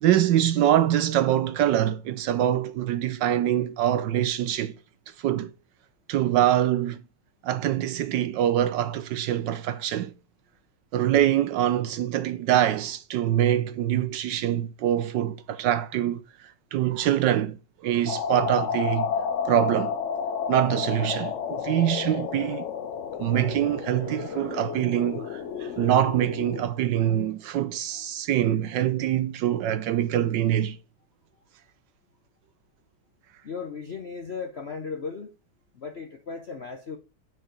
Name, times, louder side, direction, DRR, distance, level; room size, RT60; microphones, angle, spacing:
voice 1, 0.0-4.7 5.2-5.5 6.1-7.0 7.4-10.1 10.9-17.6 17.8-19.1 19.4-20.0 20.5-22.7 23.2-30.8, right 11 dB, 70° right, 1.1 m, -24 dB
sound 1, 18.1-26.6, left 7 dB, 90° left, 0.6 m, -31 dB
voice 2, 33.4-35.3 35.7-37.0, left 5 dB, 55° left, 0.7 m, -36 dB
9.7 x 4.7 x 5.0 m
omnidirectional pair, 2.3 m